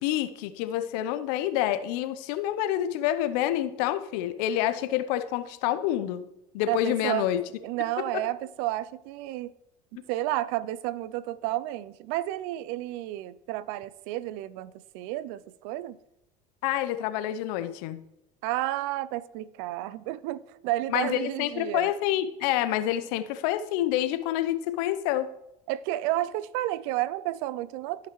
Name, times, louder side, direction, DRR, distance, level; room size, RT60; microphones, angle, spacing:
voice 1, 0.0-6.3 6.5-7.4 16.6-18.0 20.9-25.3, left 12 dB, 70° left, 0.8 m, -27 dB
voice 2, 6.7-7.3 7.6-9.5 9.9-16.0 18.4-21.9 25.7-28.1, right 15 dB, 65° right, 0.5 m, -31 dB
16.5 x 5.7 x 3.1 m
hypercardioid pair, 70°, 21 cm